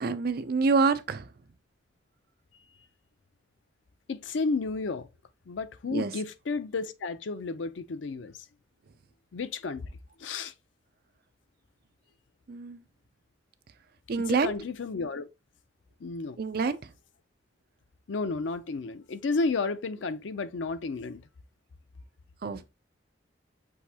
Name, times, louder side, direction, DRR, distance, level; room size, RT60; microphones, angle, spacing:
voice 1, 0.0-1.3 5.9-6.1 12.5-12.8 14.1-14.5 16.4-16.8 22.4-22.7, right 4 dB, 55° right, 0.5 m, -26 dB
voice 2, 4.1-5.1 5.5-8.5 9.3-9.9 10.2-10.5 14.3-15.3 16.0-16.4 18.1-21.2, left 4 dB, 90° left, 0.5 m, -32 dB
6.3 x 2.7 x 2.7 m
head